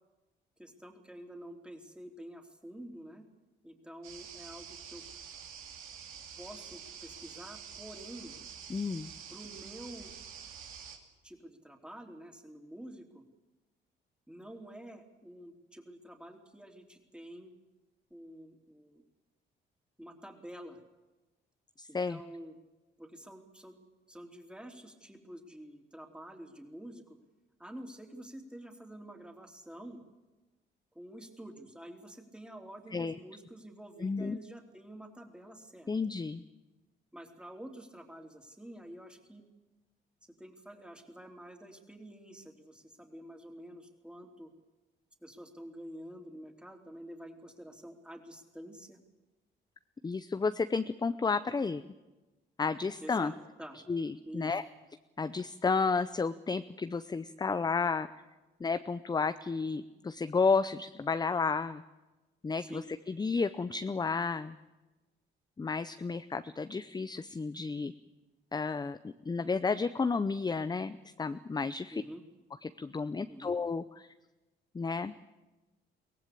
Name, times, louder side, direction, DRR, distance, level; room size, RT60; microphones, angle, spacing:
voice 1, 0.6-3.2 3.6-5.0 6.4-8.4 9.3-10.1 11.2-13.2 14.3-17.5 18.1-19.0 20.0-20.8 21.9-22.5 23.0-23.8 24.1-27.2 27.6-30.0 30.9-35.9 37.1-39.4 40.2-44.5 45.2-49.0 53.0-53.8 54.2-54.6 62.6-62.9 71.9-72.2 73.3-73.5, right 1 dB, 5° right, 4 dB, 3.2 m, -48 dB
sound 1, 4.0-11.0, right 7 dB, 90° right, 2.8 m, -47 dB
voice 2, 8.7-9.1 21.8-22.2 32.9-33.2 34.0-34.4 35.9-36.4 50.0-51.8 52.6-53.3 53.9-54.6 55.2-58.1 58.6-61.8 62.4-64.5 65.6-67.9 68.5-72.0 72.6-74.1 74.7-75.1, left 4 dB, 20° left, 11 dB, 0.6 m, -32 dB
23.0 x 17.0 x 8.5 m, 1.1 s
cardioid pair, 90°, 20 cm